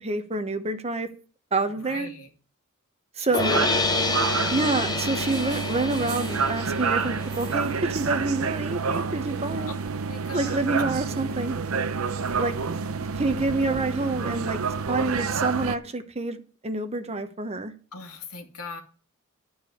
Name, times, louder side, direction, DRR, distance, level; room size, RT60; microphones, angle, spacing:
voice 1, 0.0-1.1 1.5-2.1 3.2-3.7 4.5-9.7 10.3-11.6 12.4-12.6 13.1-14.6 14.9-17.7, right 3 dB, 30° right, 0.9 m, -27 dB
voice 2, 1.7-2.3 3.2-3.6 10.1-10.7 17.9-18.8, left 3 dB, 80° left, 2.2 m, -39 dB
sound 1, 3.3-9.5, left 3 dB, 20° left, 0.8 m, -29 dB
sound 2, 3.4-15.8, right 5 dB, 70° right, 0.7 m, -29 dB
11.5 x 4.8 x 8.4 m
head